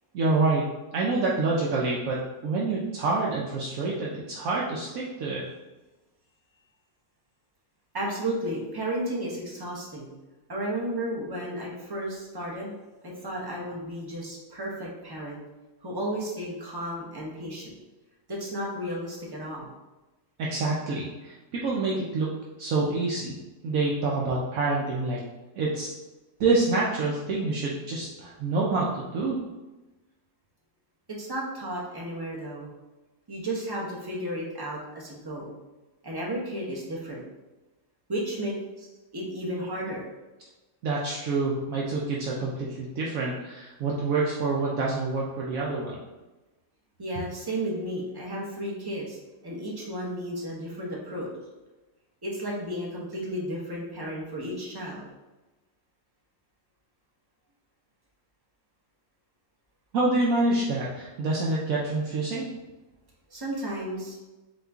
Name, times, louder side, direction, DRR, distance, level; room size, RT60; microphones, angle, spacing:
voice 1, 0.1-5.4 20.4-23.4 23.6-25.2 25.6-25.9 26.4-29.4 40.8-46.0 59.9-62.5, right 3 dB, 70° right, -4 dB, 1.0 m, -27 dB
voice 2, 7.9-10.1 10.5-12.7 13.2-15.4 15.8-17.7 18.3-19.7 31.2-32.7 33.3-35.5 36.0-37.2 38.1-38.9 39.1-40.0 47.0-49.2 49.4-51.3 52.2-55.0 63.3-64.2, right 1 dB, 20° right, -4 dB, 0.6 m, -33 dB
4.0 x 2.9 x 3.4 m, 1.1 s
omnidirectional pair, 1.6 m